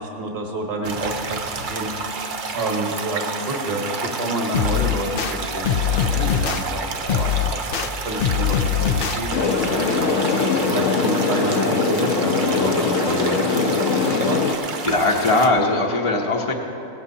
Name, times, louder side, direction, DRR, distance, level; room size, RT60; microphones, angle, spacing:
voice 1, 0.0-10.3 10.7-14.5, right 1 dB, 25° right, 0 dB, 1.3 m, -29 dB
sound 1, 0.8-15.5, right 4 dB, 45° right, 0.7 m, -30 dB
sound 2, 4.5-5.3 5.6-6.6 7.1-7.9 8.2-9.2, left 9 dB, 80° left, 0.5 m, -22 dB
sound 3, 9.3-14.6, left 4 dB, 65° left, 1.0 m, -21 dB
voice 2, 10.3-10.7 14.8-16.5, left 2 dB, 25° left, 0 dB, 0.8 m, -20 dB
17.5 x 14.5 x 2.8 m, 2.9 s
omnidirectional pair, 1.5 m